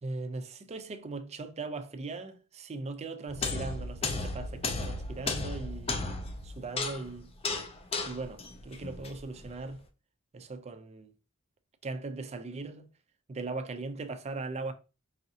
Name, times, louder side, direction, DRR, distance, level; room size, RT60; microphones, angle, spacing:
voice 1, 0.0-6.0 6.4-7.3 8.0-9.8 10.3-11.1 11.8-12.9 13.3-14.7, right 3 dB, 30° right, 0.4 m, -39 dB
sound 1, 3.3-9.6, left 3 dB, 25° left, 0.5 m, -35 dB
4.8 x 2.6 x 2.7 m
head